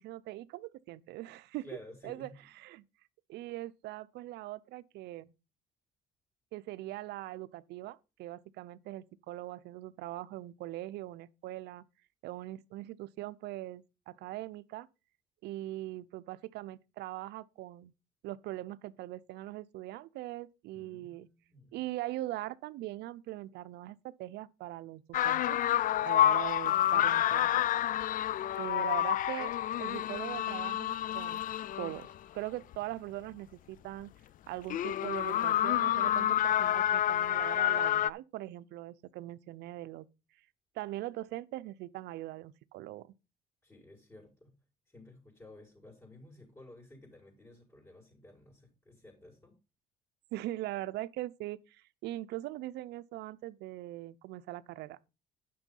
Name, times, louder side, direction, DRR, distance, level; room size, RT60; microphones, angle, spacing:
voice 1, 0.0-1.6 2.0-2.3 2.6-2.8 3.3-5.3 6.5-11.8 12.2-14.9 15.4-17.9 18.2-21.3 21.7-25.6 26.0-27.6 28.6-29.5 29.8-31.4 31.8-34.1 34.5-40.1 40.7-43.1 50.3-55.1, right 16 dB, 80° right, 0.7 m, -41 dB
voice 2, 1.6-2.3 20.7-21.8 43.6-44.5 44.9-49.5, left 1 dB, 10° left, 5.4 m, -54 dB
sound 1, 25.1-32.1 32.7-32.8 34.7-38.1, left 12 dB, 55° left, 0.5 m, -29 dB
10.5 x 6.2 x 5.5 m
cardioid pair, 110°, 17 cm